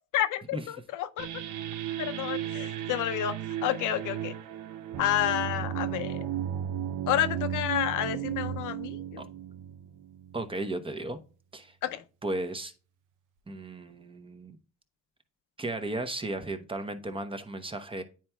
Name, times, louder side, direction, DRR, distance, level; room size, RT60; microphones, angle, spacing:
voice 1, 0.1-1.3 2.0-3.3 3.6-4.3 5.0-6.3 7.1-9.2 11.9-12.0, left 11 dB, 85° left, 0.6 m, -30 dB
sound 1, 1.2-10.5, right 10 dB, 90° right, 0.7 m, -35 dB
voice 2, 10.3-11.2 11.5-11.8 12.2-12.7 13.5-14.6 15.6-18.0, right 2 dB, 15° right, 0.9 m, -35 dB
9.5 x 4.4 x 2.3 m
cardioid pair, 90°, 30 cm